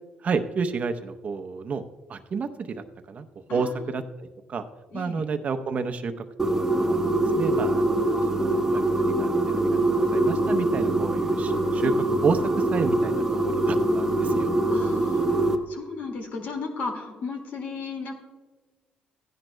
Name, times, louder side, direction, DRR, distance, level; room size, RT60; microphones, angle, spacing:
voice 1, 0.2-1.8 2.1-3.2 3.5-4.6 4.9-6.1 6.6-7.0 7.3-8.0 8.3-12.4 12.7-14.5, right 5 dB, 50° right, 8 dB, 0.7 m, -30 dB
voice 2, 3.5-3.9 4.9-5.2 14.7-15.4 15.7-18.1, left 4 dB, 70° left, 3 dB, 2.0 m, -35 dB
sound 1, 6.4-15.6, right 2 dB, 10° right, 1.1 m, -23 dB
15.5 x 10.5 x 2.2 m, 1.3 s
cardioid pair, 85°, 3 cm